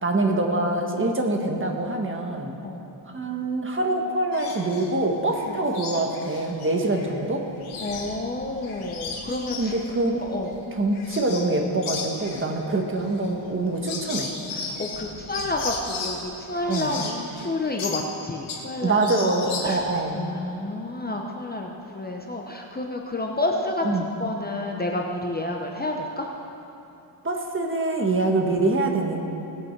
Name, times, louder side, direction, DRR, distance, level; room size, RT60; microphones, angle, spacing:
voice 1, 0.0-2.5 3.1-7.4 9.6-10.2 10.7-14.3 16.7-17.0 18.8-20.3 23.8-24.1 27.2-29.2, right 2 dB, 25° right, 2 dB, 1.5 m, -25 dB
sound 1, 4.3-4.9 5.3-7.1 7.5-11.6 11.8-18.7 19.0-20.0, left 4 dB, 90° left, 1.8 m, -35 dB
voice 2, 7.8-9.7 10.1-10.5 14.5-19.0 19.6-19.8 20.1-23.8 24.2-26.3, left 2 dB, 20° left, 1 dB, 0.9 m, -30 dB
19.0 x 8.4 x 4.7 m, 2.8 s
cardioid pair, 115°, 47 cm